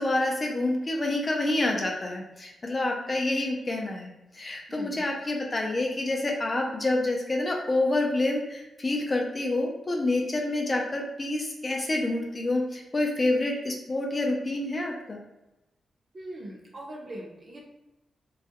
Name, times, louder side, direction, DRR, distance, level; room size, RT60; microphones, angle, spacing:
voice 1, 0.0-15.2, left 2 dB, 30° left, 0 dB, 0.4 m, -28 dB
voice 2, 4.7-5.0 16.1-17.6, right 1 dB, 40° right, -1 dB, 0.5 m, -41 dB
2.3 x 2.1 x 2.7 m, 0.96 s
wide cardioid pair, 130°, 0 cm